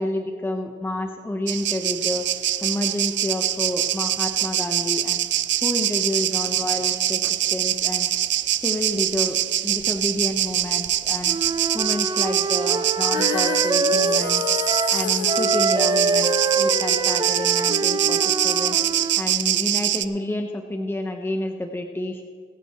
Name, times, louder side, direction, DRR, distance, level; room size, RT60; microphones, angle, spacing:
voice 1, 0.0-2.3 2.6-5.2 5.6-7.2 7.5-8.1 8.6-11.4 11.7-14.4 14.9-18.8 19.2-22.2, left 1 dB, 10° left, 4 dB, 1.1 m, -29 dB
sound 1, 1.5-20.1, right 12 dB, 65° right, 0.6 m, -24 dB
Wind instrument woodwind instrument, 11.3-15.0 15.3-19.2, right 4 dB, 20° right, 0.7 m, -25 dB
Female singing, 13.1-19.3, left 10 dB, 70° left, 0.7 m, -31 dB
26.5 x 9.0 x 3.2 m, 2.1 s
cardioid pair, 90°, 20 cm